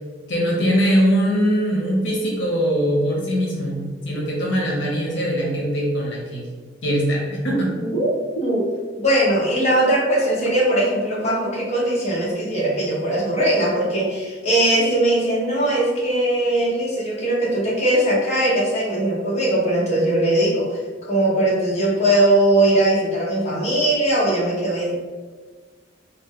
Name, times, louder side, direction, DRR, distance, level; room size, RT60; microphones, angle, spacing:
voice 1, 0.3-6.5 6.8-7.7, equal, 80° left, -3 dB, 0.9 m, -21 dB
voice 2, 7.8-8.7 9.0-25.0, right 1 dB, 35° left, -6 dB, 1.0 m, -20 dB
4.4 x 2.1 x 3.6 m, 1.4 s
head